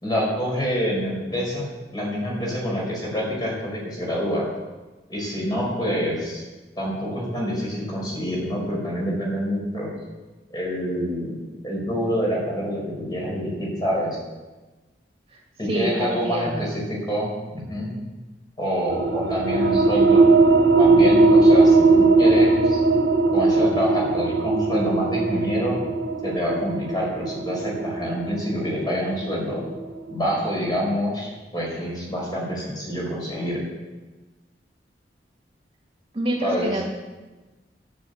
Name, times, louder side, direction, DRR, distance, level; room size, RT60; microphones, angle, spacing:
voice 1, 0.0-4.5 5.1-6.4 6.8-9.9 10.5-11.4 11.6-14.2 15.6-16.8 17.1-17.9 18.6-20.3 20.8-22.8 23.3-25.8 26.2-29.6 30.1-33.6 36.4-36.7, equal, 25° left, -3 dB, 4.9 m, -27 dB
voice 2, 15.6-16.7 36.1-36.9, right 1 dB, 35° right, -1 dB, 2.0 m, -27 dB
sound 1, 18.9-30.1, right 3 dB, 80° right, 1.1 m, -19 dB
11.0 x 9.5 x 8.0 m, 1.2 s
head